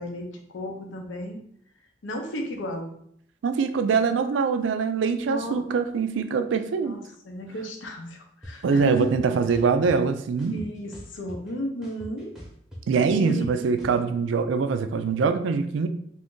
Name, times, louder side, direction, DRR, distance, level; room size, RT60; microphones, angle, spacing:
voice 1, 0.0-1.4 2.0-2.9 5.3-5.7 6.8-9.1 10.5-12.3 13.2-14.1, equal, 85° left, 3 dB, 0.6 m, -34 dB
voice 2, 3.4-7.0 8.6-10.6 12.9-15.9, right 5 dB, 80° right, 8 dB, 0.3 m, -23 dB
sound 1, 8.4-8.5 9.0-9.9 10.4-11.5 11.8-14.0, equal, 5° right, 0.7 m, -42 dB
2.6 x 2.5 x 3.6 m, 0.70 s
head